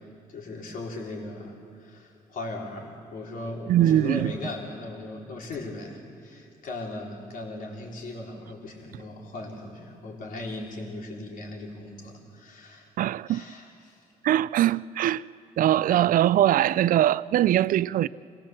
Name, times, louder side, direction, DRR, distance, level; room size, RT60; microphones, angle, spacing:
voice 1, 0.0-12.9 13.3-14.0, left 2 dB, 65° left, 3.8 m, -38 dB
voice 2, 3.7-4.3 13.0-13.4 14.2-15.2 15.6-18.1, right 12 dB, 65° right, 0.5 m, -22 dB
26.5 x 17.0 x 7.5 m
cardioid pair, 75°, 15 cm